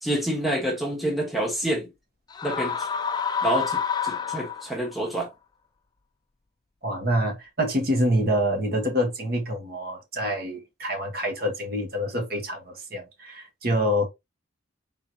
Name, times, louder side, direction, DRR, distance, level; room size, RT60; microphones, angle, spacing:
voice 1, 0.0-1.9 2.4-2.9 3.4-5.3, right 1 dB, ahead, 1.3 m, -27 dB
sound 1, 2.3-4.9, left 7 dB, 20° left, 0.3 m, -28 dB
voice 2, 6.8-14.1, equal, 50° right, 1.3 m, -26 dB
4.6 x 3.8 x 2.8 m
head